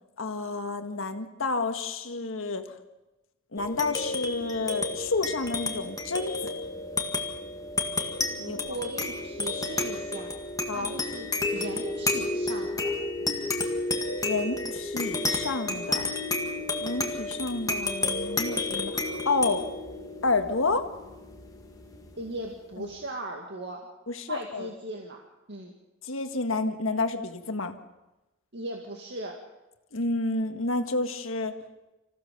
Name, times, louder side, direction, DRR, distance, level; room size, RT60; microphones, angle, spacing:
voice 1, 0.2-2.6 3.5-6.5 8.5-8.6 10.7-10.9 14.2-16.1 16.8-19.6 20.2-20.8 22.8-22.9 24.1-24.7 26.0-27.8 29.9-31.5, left 3 dB, 70° left, 7 dB, 1.7 m, -30 dB
sound 1, 3.6-22.4, left 2 dB, 15° left, 2.0 m, -31 dB
voice 2, 8.4-10.3 10.7-12.9 22.1-23.9 24.3-25.2 25.5-25.7 28.5-29.4, right 1 dB, 55° right, 1 dB, 2.0 m, -38 dB
26.5 x 15.5 x 6.7 m, 1.0 s
head